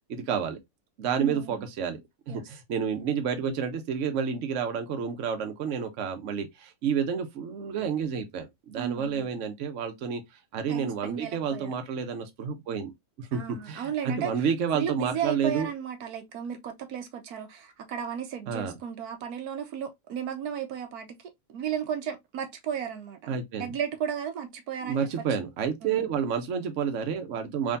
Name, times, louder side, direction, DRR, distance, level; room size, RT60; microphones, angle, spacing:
voice 1, 0.1-0.6 1.0-2.0 2.3-10.2 10.5-12.9 13.2-15.7 18.5-18.8 23.3-23.7 24.8-27.8, right 7 dB, 60° right, 1.1 m, -30 dB
voice 2, 1.2-1.6 2.3-2.4 8.7-9.3 10.7-11.7 13.3-14.5 14.7-21.2 21.5-23.2 23.6-25.4 25.8-25.9, right 8 dB, 80° right, 1.3 m, -34 dB
3.7 x 3.3 x 2.5 m
omnidirectional pair, 1.6 m